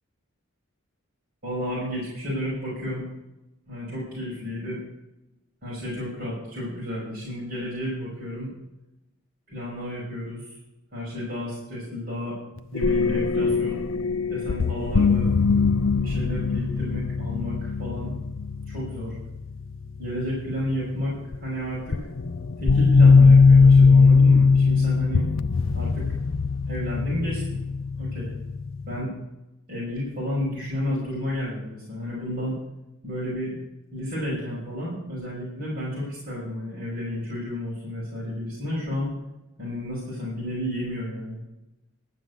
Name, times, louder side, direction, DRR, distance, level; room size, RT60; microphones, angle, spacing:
voice 1, 1.4-3.0 3.7-4.8 5.6-8.5 9.5-10.5 10.9-12.4 12.7-13.8 14.3-15.3 16.0-18.2 18.7-19.1 20.0-21.2 21.4-21.9 22.6-25.2 25.7-26.0 26.7-27.6 28.0-28.3 28.9-29.1 29.7-32.6 33.0-33.5 33.9-39.1 39.6-41.4, left 1 dB, 45° right, -6 dB, 5.7 m, -31 dB
sound 1, 12.7-19.6 21.3-21.4 21.9-29.0, left 4 dB, 65° left, 0.5 m, -20 dB
12.5 x 7.7 x 8.2 m, 0.94 s
head